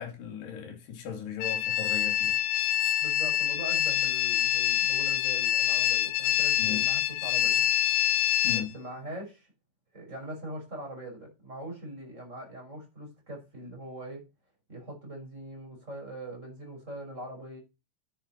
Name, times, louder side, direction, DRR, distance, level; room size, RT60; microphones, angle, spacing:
voice 1, 0.0-2.4 6.6-6.9 8.4-8.7, left 9 dB, 70° left, 4.7 m, -37 dB
sound 1, 1.4-8.6, left 11 dB, 85° left, 3.2 m, -26 dB
voice 2, 3.0-7.7 8.7-9.5 9.9-14.2 14.7-17.6, right 1 dB, 15° right, 5.8 m, -42 dB
10.5 x 9.8 x 4.4 m
omnidirectional pair, 5.0 m